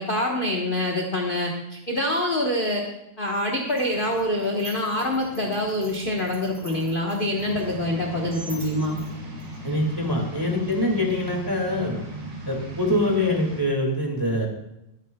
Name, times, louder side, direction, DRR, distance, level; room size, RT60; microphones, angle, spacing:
voice 1, 0.0-2.9 3.2-9.0, left 1 dB, 30° left, 0 dB, 1.0 m, -25 dB
sound 1, 3.7-9.9, equal, 40° right, 4.2 m, -44 dB
sound 2, 7.4-13.6, right 1 dB, 65° right, 3.2 m, -37 dB
voice 2, 9.6-12.0 12.5-14.5, left 1 dB, 10° right, 0 dB, 1.8 m, -24 dB
20.5 x 9.2 x 2.3 m, 0.87 s
omnidirectional pair, 2.4 m